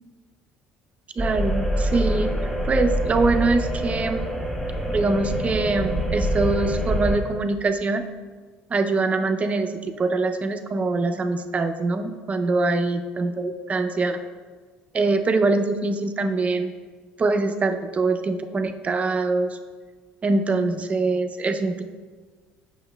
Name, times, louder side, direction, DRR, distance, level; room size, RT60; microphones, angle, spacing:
sound 1, 1.2-7.2, equal, 10° left, 1.5 m, -25 dB
voice 1, 1.2-2.3 2.6-4.3 4.9-8.0 8.7-14.2 14.9-16.7 17.2-19.5 20.2-21.8, right 3 dB, 30° right, 7 dB, 0.5 m, -23 dB
8.6 x 6.3 x 2.2 m, 1.5 s
supercardioid pair, 90°, 5 cm